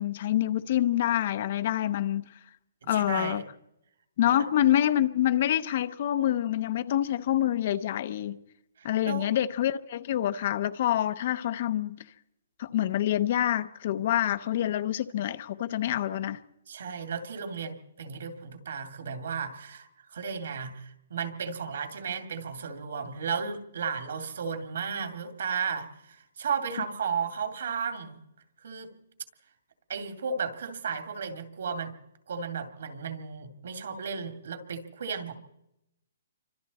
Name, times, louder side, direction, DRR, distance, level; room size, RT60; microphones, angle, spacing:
voice 1, 0.0-2.2 2.9-3.4 4.2-8.4 8.8-12.0 12.6-16.4, left 12 dB, 35° left, 0.7 m, -26 dB
voice 2, 2.8-3.4 4.3-4.4 8.8-9.4 15.8-16.0 16.7-28.2 28.6-28.9 29.9-31.9 32.3-35.3, right 6 dB, 55° right, 2.5 m, -34 dB
28.0 x 25.0 x 4.2 m
hypercardioid pair, 175°, 0 cm